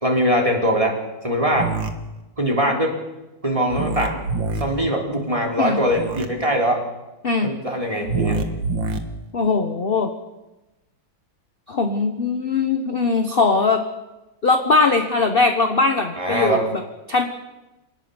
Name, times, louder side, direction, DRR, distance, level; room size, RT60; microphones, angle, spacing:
voice 1, 0.0-1.0 1.2-1.7 2.4-3.0 3.4-4.2 4.6-6.8 7.4-8.4 16.2-16.7, equal, 15° right, 1 dB, 3.8 m, -21 dB
sound 1, 1.5-1.9 3.7-4.6 5.9-6.3 8.0-9.0, right 4 dB, 70° right, 2.4 m, -25 dB
voice 2, 9.3-10.1 11.7-13.8 14.4-16.8 17.1-17.3, left 4 dB, 30° left, 6 dB, 1.3 m, -20 dB
26.5 x 18.5 x 7.1 m, 1.0 s
omnidirectional pair, 2.2 m